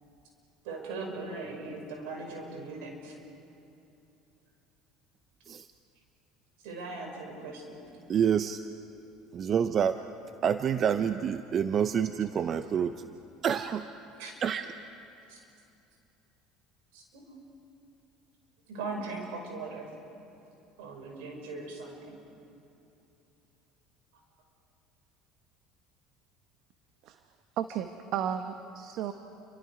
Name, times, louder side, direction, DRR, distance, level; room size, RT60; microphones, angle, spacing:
voice 1, 0.6-3.1 6.6-7.8 14.2-14.4 15.3-15.4 16.9-17.2 18.7-19.8 20.8-22.2, right 3 dB, 80° right, 1 dB, 5.8 m, -39 dB
voice 2, 8.1-8.6 9.3-10.0 10.4-13.0 13.4-13.9 14.4-14.7, right 8 dB, 45° right, 10 dB, 0.7 m, -27 dB
voice 3, 27.6-29.1, right 9 dB, 65° right, 8 dB, 1.0 m, -33 dB
29.5 x 25.0 x 4.9 m, 2.8 s
hypercardioid pair, 80°, 0 cm